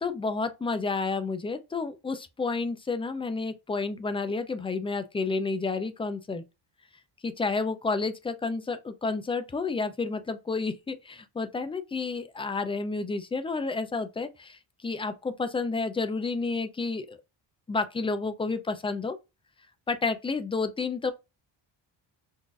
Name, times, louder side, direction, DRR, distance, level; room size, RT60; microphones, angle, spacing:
voice 1, 0.0-6.4 7.2-17.2 17.7-19.2 19.9-21.1, left 4 dB, 15° left, 0.3 m, -30 dB
3.9 x 2.5 x 2.3 m
cardioid pair, 120°, 45 cm